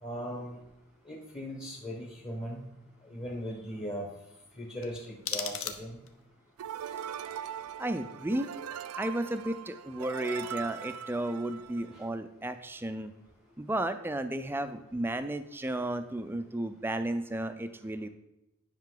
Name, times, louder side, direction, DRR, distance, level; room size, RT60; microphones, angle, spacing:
voice 1, 0.0-0.6 1.1-2.6 3.1-4.1 4.6-6.0 11.9-12.0, equal, 25° left, -2 dB, 1.1 m, -38 dB
sound 1, 4.8-6.3, left 8 dB, 65° left, 0.8 m, -38 dB
sound 2, 6.6-12.1, right 9 dB, 90° right, 0.4 m, -41 dB
voice 2, 7.8-8.5 9.0-13.1 13.6-18.1, right 1 dB, 10° right, 9 dB, 0.4 m, -33 dB
10.5 x 5.7 x 3.9 m, 0.88 s
head